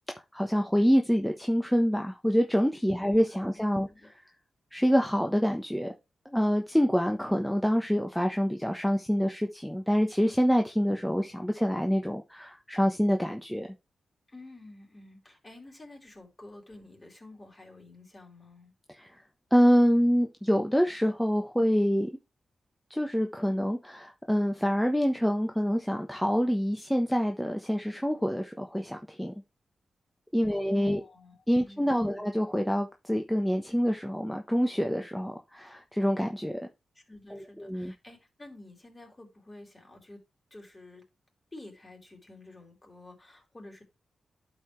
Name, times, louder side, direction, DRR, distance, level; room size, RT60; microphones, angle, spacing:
voice 1, 0.3-3.9 4.7-5.9 6.2-13.7 18.9-19.2 19.5-22.1 22.9-29.3 30.3-31.0 31.5-36.6 37.3-37.9, equal, 5° left, 1.1 m, -26 dB
voice 2, 14.3-18.7 30.5-32.3 36.9-40.2 40.5-41.0 41.5-43.8, left 2 dB, 25° left, 4.4 m, -50 dB
11.0 x 4.8 x 3.3 m
cardioid pair, 55°, 0 cm